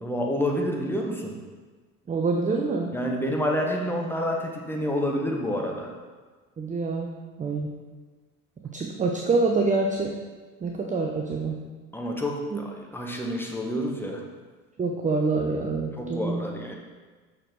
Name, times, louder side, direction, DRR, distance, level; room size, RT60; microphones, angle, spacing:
voice 1, 0.0-1.4 2.9-5.9 11.9-14.2 16.0-16.7, equal, 5° left, 0 dB, 1.2 m, -28 dB
voice 2, 2.1-2.9 6.6-7.1 7.4-7.7 8.7-10.1 10.6-11.6 12.5-12.6 14.8-16.4, right 3 dB, 15° right, 1 dB, 0.6 m, -26 dB
6.5 x 6.3 x 3.9 m, 1.4 s
figure-of-eight pair, 65°, 44 cm